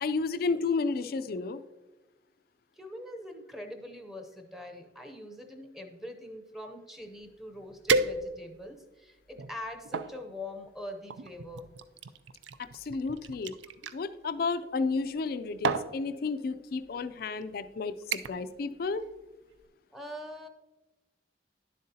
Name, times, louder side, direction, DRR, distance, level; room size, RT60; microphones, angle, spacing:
voice 1, 0.0-1.6 12.6-13.5 13.9-19.0, left 4 dB, 55° left, 12 dB, 0.4 m, -32 dB
voice 2, 2.7-11.7 19.9-20.5, left 1 dB, ahead, 4 dB, 0.6 m, -43 dB
sound 1, 7.2-7.3 7.9-8.6 9.3-10.1 11.1-14.0 15.1-15.3 15.6-15.9 16.8-17.0 17.4-17.7 18.1-18.5 18.8-19.2 19.6-19.7, right 4 dB, 80° right, 0.4 m, -32 dB
10.5 x 7.5 x 2.8 m, 1.1 s
head